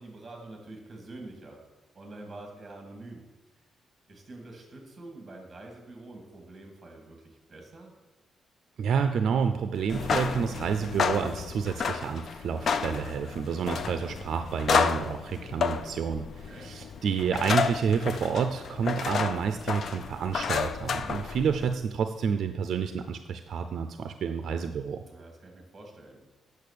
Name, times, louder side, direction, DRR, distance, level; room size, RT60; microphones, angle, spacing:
voice 1, 0.0-1.6 1.9-3.3 4.1-7.9 16.3-16.7 25.0-26.2, right 2 dB, 20° right, 2 dB, 2.2 m, -46 dB
voice 2, 8.8-25.0, right 6 dB, 60° right, 8 dB, 0.5 m, -29 dB
sound 1, 9.8-21.7, left 6 dB, 50° left, 0.5 m, -31 dB
8.6 x 6.6 x 6.7 m, 1.2 s
cardioid pair, 150°, 0 cm